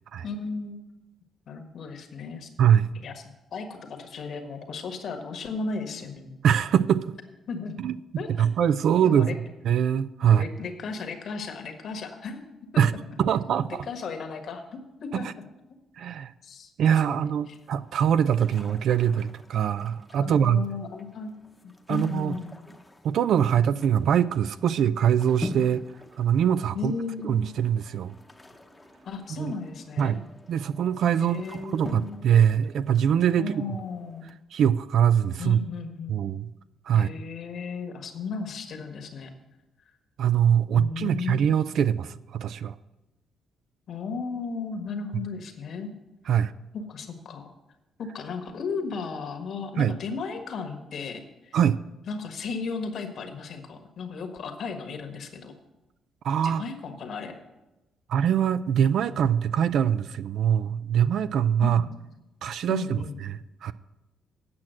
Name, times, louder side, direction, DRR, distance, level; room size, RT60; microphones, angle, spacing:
voice 1, 0.2-0.8 1.5-2.5 3.0-3.2 3.5-6.3 7.5-7.7 8.2-8.5 8.8-9.3 10.3-12.4 12.7-12.9 13.8-15.4 16.4-17.6 20.2-21.4 21.6-22.5 26.7-27.5 29.0-30.2 31.2-32.3 33.4-34.3 35.4-36.2 36.9-39.3 40.7-41.4 43.9-45.9 46.7-47.5 48.0-51.6 52.1-55.5 56.4-57.4 61.6-61.9 62.7-63.2, left 4 dB, 65° left, 5 dB, 1.5 m, -35 dB
voice 2, 2.6-2.9 6.4-7.1 7.8-8.0 8.4-9.3 9.6-10.4 12.8-12.9 13.2-13.9 15.1-15.2 16.0-16.3 16.8-20.6 21.9-22.4 23.0-25.8 26.2-26.9 27.2-28.1 29.4-29.5 30.0-30.2 30.5-33.5 34.5-35.6 36.1-36.5 36.9-37.1 40.2-42.7 46.3-46.5 49.8-49.9 51.5-51.8 56.2-56.6 58.1-61.8 62.4-63.7, right 9 dB, 70° right, 14 dB, 0.4 m, -23 dB
sound 1, 17.5-34.3, left 1 dB, 10° left, 0.9 m, -45 dB
8.6 x 6.0 x 7.6 m, 1.0 s
cardioid pair, 90°, 0 cm